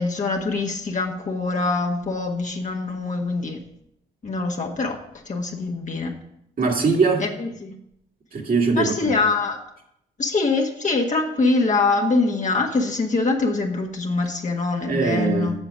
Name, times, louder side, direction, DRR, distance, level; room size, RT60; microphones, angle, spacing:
voice 1, 0.0-3.6 4.2-5.0 5.2-6.1 7.2-7.8 8.7-9.6 10.2-15.6, left 3 dB, 45° left, 1 dB, 1.5 m, -24 dB
voice 2, 6.6-7.3 8.3-9.1 14.9-15.6, right 4 dB, 55° right, 0 dB, 2.2 m, -21 dB
7.9 x 6.5 x 6.3 m, 0.77 s
supercardioid pair, 50°, 18 cm